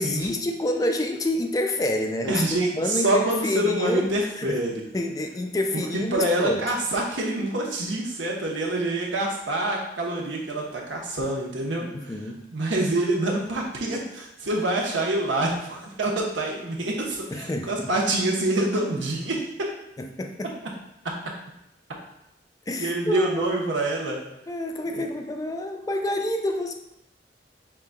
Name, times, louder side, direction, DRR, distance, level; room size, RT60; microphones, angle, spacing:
voice 1, 0.0-4.1 4.4-4.6 4.9-6.7 11.8-12.4 17.3-17.9 20.0-20.6 22.7-23.5 24.5-26.7, left 1 dB, 20° left, 5 dB, 0.3 m, -28 dB
voice 2, 2.3-4.8 5.7-12.1 12.5-19.4 22.8-24.2 24.9-25.0, right 1 dB, 90° right, -1 dB, 1.0 m, -26 dB
5.6 x 3.8 x 2.3 m, 0.84 s
head